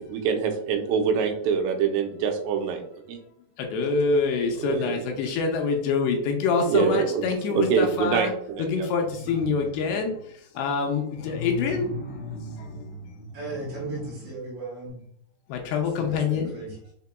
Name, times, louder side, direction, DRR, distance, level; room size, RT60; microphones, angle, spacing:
voice 1, 0.0-2.8 3.1-3.2 4.6-5.0 6.7-7.2 7.5-8.9, right 6 dB, 90° right, 4 dB, 2.8 m, -25 dB
voice 2, 3.6-8.3 8.6-10.1 10.6-11.9 15.5-16.5, left 4 dB, 85° left, 2 dB, 2.6 m, -25 dB
sound 1, 9.0-10.2 11.1-14.3 14.9-15.0, left 3 dB, 60° left, 1.0 m, -38 dB
voice 3, 13.3-15.0 15.6-16.8, right 3 dB, 65° right, -6 dB, 3.0 m, -37 dB
6.7 x 2.9 x 2.2 m, 0.68 s
omnidirectional pair, 4.8 m